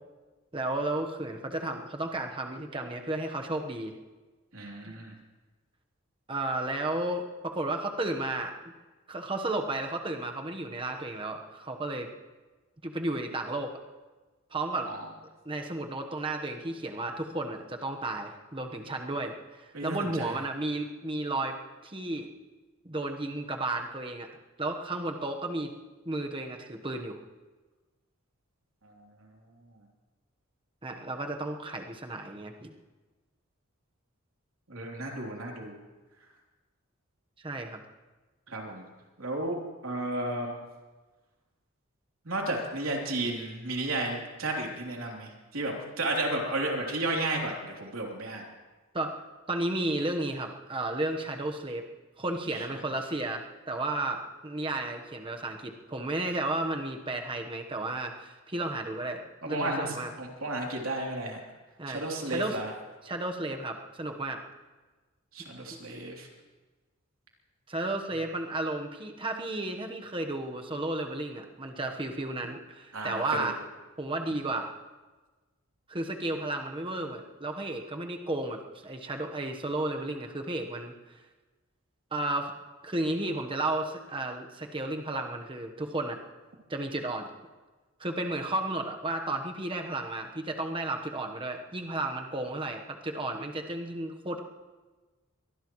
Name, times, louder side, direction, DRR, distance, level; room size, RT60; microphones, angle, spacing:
voice 1, 0.5-3.9 4.8-5.0 6.3-8.5 9.1-12.1 12.8-13.8 14.5-14.9 15.4-21.5 21.8-22.3 22.8-24.3 24.6-25.7 26.0-27.2 30.8-32.7 37.4-37.8 48.9-49.2 49.5-51.8 52.2-60.1 61.8-62.6 63.0-64.4 65.7-65.8 67.7-73.6 74.0-74.7 75.9-80.9 82.1-82.5 82.8-86.2 86.7-87.3 88.0-94.4, right 2 dB, 25° right, 4 dB, 1.1 m, -33 dB
voice 2, 4.5-5.1 14.8-15.0 19.7-20.3 28.8-29.3 29.7-29.8 34.7-35.8 38.5-38.9 39.2-40.6 42.2-48.5 52.5-52.6 59.4-61.4 61.9-62.7 65.3-66.3 72.9-73.5, right 2 dB, 80° right, 0 dB, 3.3 m, -33 dB
24.0 x 19.0 x 3.1 m, 1.3 s
head